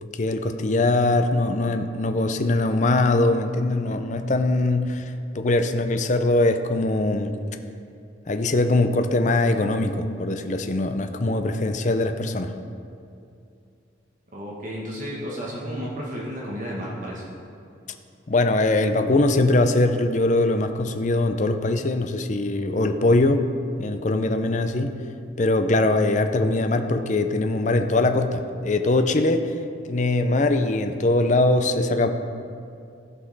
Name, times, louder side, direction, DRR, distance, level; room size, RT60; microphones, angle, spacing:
voice 1, 0.0-7.3 8.3-12.5 18.3-23.5 23.8-25.0 25.4-29.6 29.9-32.1, left 2 dB, 40° left, 7 dB, 0.5 m, -22 dB
voice 2, 14.3-17.3, equal, 45° right, -5 dB, 1.4 m, -32 dB
15.0 x 5.4 x 4.1 m, 2.5 s
head